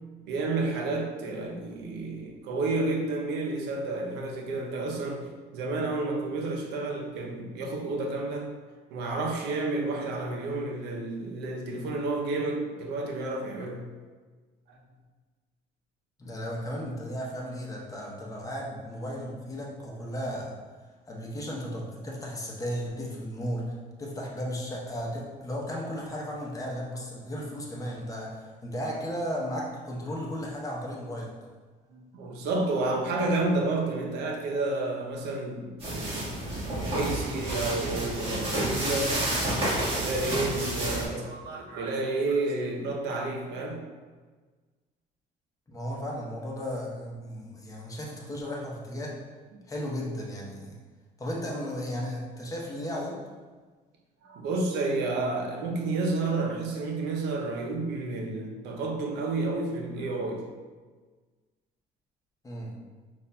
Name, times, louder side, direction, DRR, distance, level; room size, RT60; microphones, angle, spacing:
voice 1, 0.3-8.5 8.9-13.8 14.7-14.8 31.9-36.2 36.7-39.2 39.9-43.8 54.2-60.4, right 2 dB, 90° right, 0 dB, 0.6 m, -30 dB
voice 2, 16.2-20.5 21.1-31.3 45.7-49.2 49.7-50.8 51.2-53.2 62.4-62.7, equal, 20° left, -3 dB, 0.8 m, -35 dB
sound 1, 35.8-41.1, right 1 dB, 35° right, 1.4 m, -30 dB
5.5 x 2.5 x 2.2 m, 1.4 s
cardioid pair, 110°, 17 cm